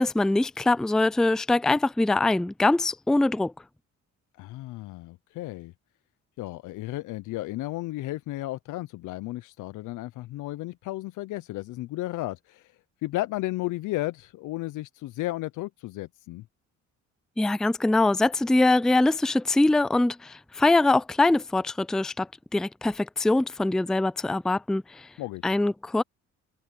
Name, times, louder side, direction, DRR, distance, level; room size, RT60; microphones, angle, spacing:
voice 1, 0.0-3.5 17.4-25.1 25.4-26.0, left 2 dB, ahead, 0.4 m, -23 dB
voice 2, 4.4-5.7 6.4-16.5 25.2-25.5, left 17 dB, 85° left, 0.6 m, -34 dB
cardioid pair, 90°, 30 cm